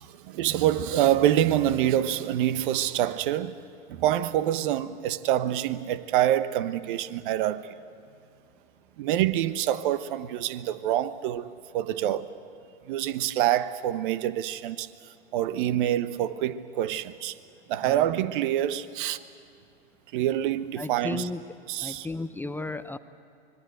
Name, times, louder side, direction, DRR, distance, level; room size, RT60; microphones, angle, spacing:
voice 1, 0.0-3.5 3.9-7.7 9.0-12.3 12.9-14.9 15.3-17.3 17.7-19.2 20.1-21.3 21.7-22.1, right 12 dB, 60° right, 1.1 m, -26 dB
voice 2, 17.8-18.1 20.8-21.4 21.8-23.0, left 2 dB, 5° left, 0.6 m, -34 dB
25.5 x 21.5 x 8.0 m
hypercardioid pair, 100°, 30 cm